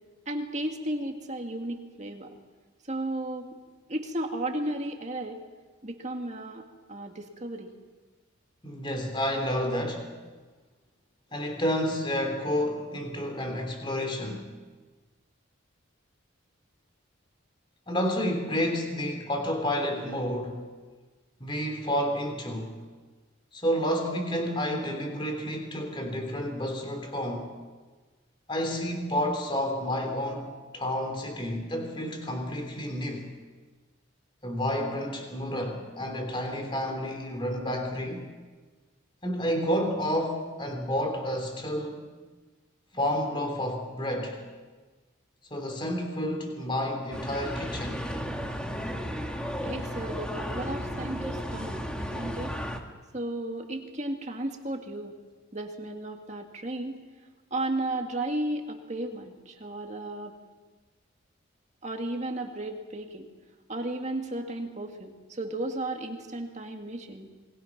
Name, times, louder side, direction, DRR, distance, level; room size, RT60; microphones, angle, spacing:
voice 1, 0.3-2.4 2.9-3.5 3.9-5.4 5.8-6.6 6.9-7.7 49.6-52.6 53.1-55.1 55.5-57.0 57.5-60.3 61.8-63.3 63.7-67.3, right 1 dB, 35° right, 3 dB, 2.0 m, -34 dB
voice 2, 8.6-10.1 11.3-14.5 17.9-20.7 21.4-22.8 23.5-27.5 28.5-33.3 34.4-38.3 39.2-42.1 42.9-44.4 45.5-48.1, equal, 25° left, 4 dB, 2.9 m, -30 dB
sound 1, 47.1-52.8, equal, 5° left, 1.5 m, -34 dB
27.5 x 21.0 x 5.9 m, 1.3 s
head